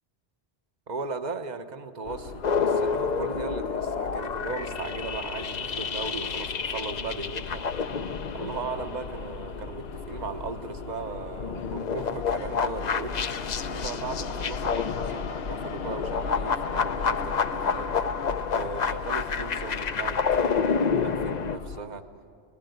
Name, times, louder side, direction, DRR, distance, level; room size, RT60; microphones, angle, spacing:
voice 1, 0.9-7.6 8.3-13.1 13.6-18.1 18.5-22.0, right 4 dB, 45° right, 8 dB, 1.1 m, -37 dB
sound 1, 2.0-21.8, left 5 dB, 70° left, 1.1 m, -38 dB
sound 2, 2.4-10.3 10.7-21.6, left 5 dB, 45° left, 0.7 m, -29 dB
24.5 x 18.5 x 9.2 m, 2.4 s
omnidirectional pair, 1.1 m